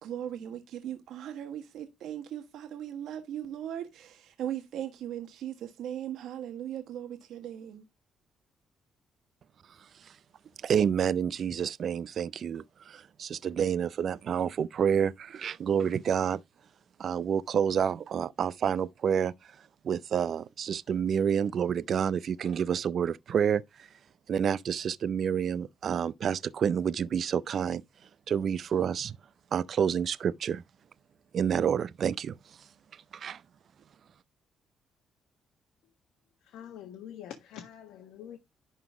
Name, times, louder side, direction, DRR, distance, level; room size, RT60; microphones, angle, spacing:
voice 1, 0.0-7.8, right 10 dB, 80° right, 1.4 m, -38 dB
voice 2, 10.6-16.4 17.0-19.5 19.8-23.9 24.3-27.8 28.3-29.2 29.5-30.6 31.3-32.3 32.9-33.4, right 8 dB, 60° right, 0.4 m, -29 dB
voice 3, 36.4-38.4, left 10 dB, 85° left, 1.5 m, -45 dB
11.0 x 3.9 x 4.8 m
cardioid pair, 90°, 0 cm